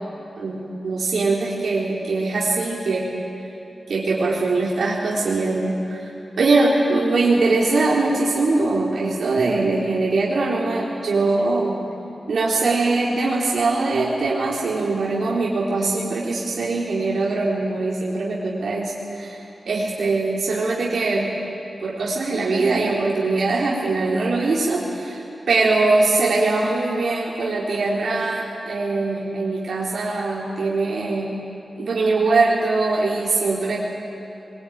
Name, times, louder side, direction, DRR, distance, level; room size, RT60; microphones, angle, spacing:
voice 1, 0.4-3.2 3.9-6.0 6.4-11.8 12.3-19.4 19.7-21.4 21.8-31.3 31.8-33.8, right 3 dB, 80° right, -6 dB, 3.7 m, -22 dB
23.0 x 22.0 x 9.3 m, 2.8 s
wide cardioid pair, 155°, 0 cm